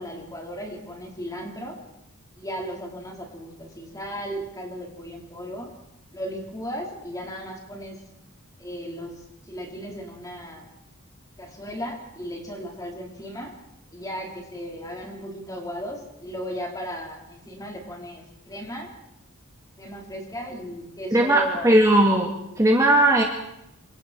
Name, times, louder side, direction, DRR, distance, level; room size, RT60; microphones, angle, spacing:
voice 1, 0.0-1.8 2.4-5.7 6.1-8.0 8.6-10.7 11.4-13.5 13.9-18.9 19.8-21.7, equal, 15° left, 0 dB, 4.8 m, -36 dB
voice 2, 21.1-23.2, right 1 dB, 15° right, 0 dB, 2.1 m, -18 dB
27.5 x 26.0 x 4.7 m, 0.84 s
head